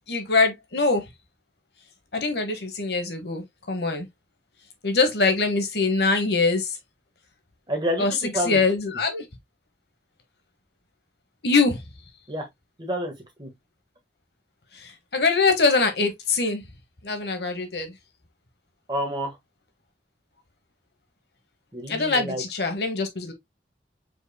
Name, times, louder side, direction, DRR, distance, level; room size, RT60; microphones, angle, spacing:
voice 1, 0.1-1.0 2.1-4.1 4.8-6.7 8.0-8.1 8.5-9.2 11.4-11.8 14.8-16.6 17.0-17.9 21.9-23.3, left 3 dB, 70° left, 1.1 m, -23 dB
voice 2, 7.7-8.6 12.3-12.5 12.8-13.1 13.4-13.5 18.9-19.4 21.7-22.4, equal, 25° right, 1.5 m, -28 dB
5.1 x 3.5 x 2.2 m
head